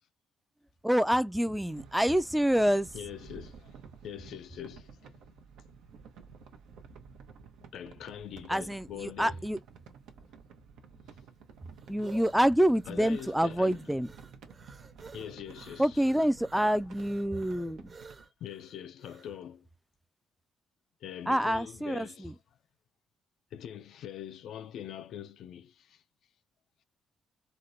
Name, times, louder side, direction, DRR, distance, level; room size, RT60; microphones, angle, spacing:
voice 1, 0.8-2.9 8.5-9.6 11.9-14.1 15.8-17.9 21.3-22.3, equal, ahead, 0.3 m, -27 dB
sound 1, 1.6-18.3, right 6 dB, 85° right, 0.7 m, -52 dB
voice 2, 2.9-3.8 4.0-5.4 7.7-9.3 12.9-13.8 15.1-15.9 18.4-19.7 21.0-22.3 23.5-26.0, left 10 dB, 75° left, 0.3 m, -43 dB
sound 2, 11.1-19.4, right 4 dB, 40° right, 0.9 m, -54 dB
4.2 x 2.1 x 2.5 m
cardioid pair, 90°, 0 cm